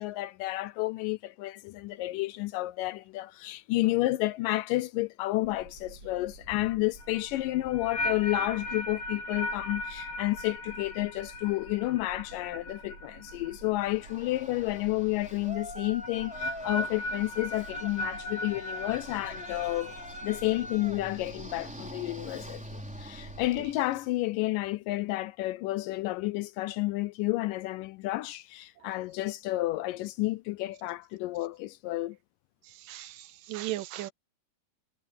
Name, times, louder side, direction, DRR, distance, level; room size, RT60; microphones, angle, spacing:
voice 1, 0.0-20.0 20.2-32.2, left 18 dB, 80° left, 2.2 m, -31 dB
sound 1, 5.4-23.7, right 3 dB, 45° right, 3.7 m, -51 dB
sound 2, 7.0-14.1 14.4-14.8 16.0-20.6, left 1 dB, 55° left, 2.6 m, -38 dB
Yell, 13.9-24.1, left 1 dB, ahead, 3.4 m, -44 dB
voice 2, 32.8-34.1, right 15 dB, 75° right, 2.6 m, -36 dB
omnidirectional pair, 3.9 m